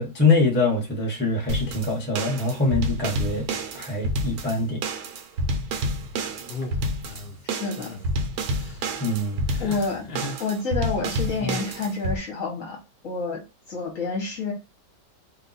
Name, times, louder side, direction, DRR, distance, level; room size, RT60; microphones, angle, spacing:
voice 1, 0.0-3.5 3.7-4.8 9.0-9.5, left 3 dB, 10° left, -1 dB, 0.7 m, -24 dB
sound 1, 1.5-12.2, right 1 dB, 70° right, 1.1 m, -29 dB
sound 2, 6.5-7.4 7.8-8.0 8.4-8.9 9.5-10.4 11.4-11.7, left 3 dB, 75° left, 0.5 m, -36 dB
voice 2, 7.6-8.0 9.6-10.1 10.4-12.8 13.0-13.4 13.7-14.5, left 4 dB, 60° left, -1 dB, 1.1 m, -28 dB
2.7 x 2.3 x 3.9 m, 0.29 s
omnidirectional pair, 1.9 m